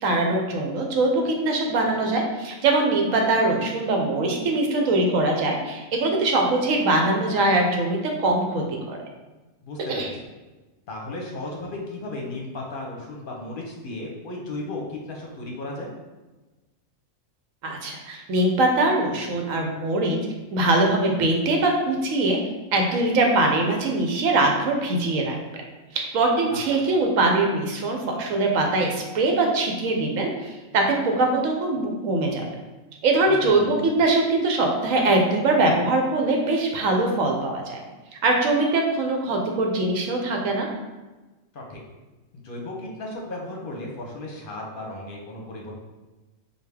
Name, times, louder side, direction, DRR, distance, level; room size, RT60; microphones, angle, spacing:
voice 1, 0.0-9.0 9.9-10.1 17.6-20.2 20.5-22.4 22.7-25.4 25.9-32.4 33.0-37.8 38.2-40.7, right 2 dB, 75° right, 1 dB, 1.1 m, -22 dB
voice 2, 9.6-10.1 10.9-15.9 26.5-26.6 33.3-33.4 41.5-41.8 42.4-45.8, left 2 dB, 50° left, -1 dB, 0.8 m, -35 dB
5.0 x 2.3 x 3.4 m, 1.2 s
omnidirectional pair, 1.4 m